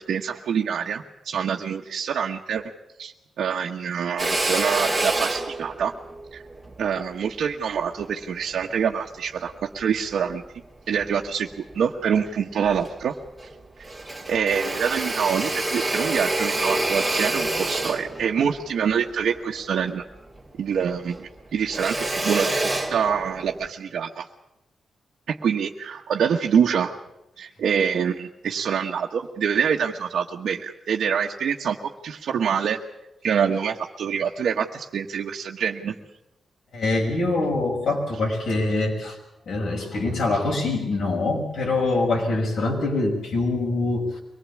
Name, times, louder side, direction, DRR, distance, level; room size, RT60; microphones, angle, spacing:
voice 1, 0.0-2.7 3.0-5.9 6.3-6.4 6.8-10.4 10.9-11.5 11.7-13.1 14.3-20.0 20.6-22.5 22.9-24.3 25.3-27.0 27.4-32.8 33.2-35.9, right 7 dB, 85° right, 0 dB, 1.2 m, -25 dB
Drill, 4.2-8.7 9.3-10.5 10.9-11.8 12.2-12.3 12.6-13.6 13.8-20.5 20.8-23.7, right 2 dB, 5° right, 2.6 m, -28 dB
voice 2, 36.7-39.2 39.5-44.2, left 2 dB, 70° left, -1 dB, 6.0 m, -24 dB
24.0 x 19.5 x 8.5 m, 0.92 s
wide cardioid pair, 165°, 0 cm